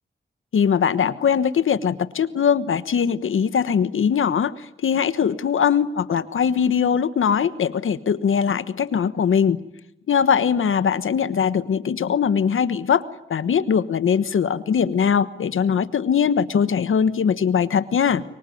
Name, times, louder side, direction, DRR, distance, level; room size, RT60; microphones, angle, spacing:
voice 1, 0.5-9.6 10.1-13.0 13.3-18.2, left 7 dB, 90° left, 14 dB, 1.2 m, -21 dB
26.5 x 23.5 x 9.3 m, 0.81 s
cardioid pair, 45°, 20 cm